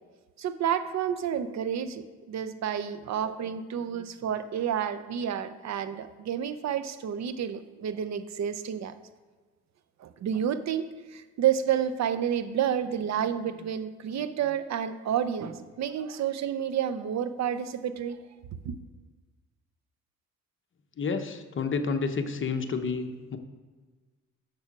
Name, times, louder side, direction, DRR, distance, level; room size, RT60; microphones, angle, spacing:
voice 1, 0.4-8.9 10.0-18.2 18.6-18.7, right 9 dB, 60° right, 11 dB, 0.7 m, -30 dB
voice 2, 21.0-23.4, left 4 dB, 40° left, 7 dB, 0.9 m, -30 dB
7.1 x 6.6 x 6.0 m, 1.4 s
cardioid pair, 90°, 30 cm